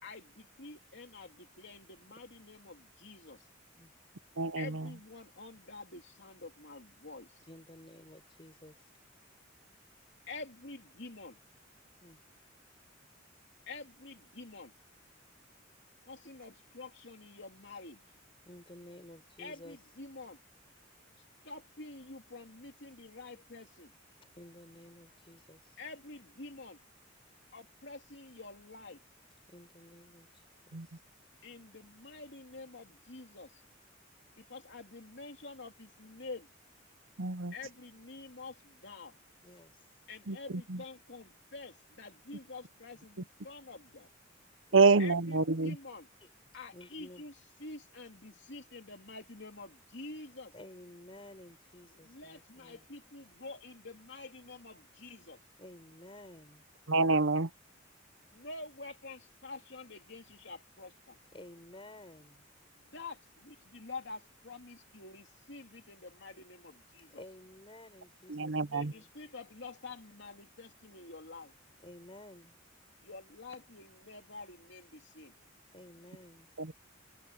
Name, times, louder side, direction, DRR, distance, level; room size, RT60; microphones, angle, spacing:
voice 1, 0.0-3.5 4.6-7.5 10.3-11.4 13.7-14.7 16.0-18.0 19.4-20.4 21.4-23.9 25.8-26.8 27.5-29.0 31.4-33.6 34.3-36.5 37.5-39.2 40.1-44.1 45.0-46.1 46.5-47.3 47.6-50.5 51.9-55.4 58.3-61.2 62.7-67.2 68.6-71.5 73.0-75.3, left 3 dB, 60° left, 3.1 m, -48 dB
voice 2, 4.4-4.9 30.7-30.9 37.2-37.5 40.3-40.4 40.7-40.8 44.7-45.8 56.9-57.5 68.3-68.9 76.6-76.7, right 4 dB, 75° right, 0.9 m, -27 dB
voice 3, 7.5-8.9 12.0-12.2 18.4-19.8 24.3-25.8 29.5-30.3 30.6-31.0 39.4-39.9 42.9-43.1 44.7-44.9 46.2-46.3 46.7-47.2 50.5-52.8 55.6-56.7 61.3-62.5 67.2-69.1 71.8-72.6 75.7-76.5, left 1 dB, 25° left, 6.4 m, -53 dB
head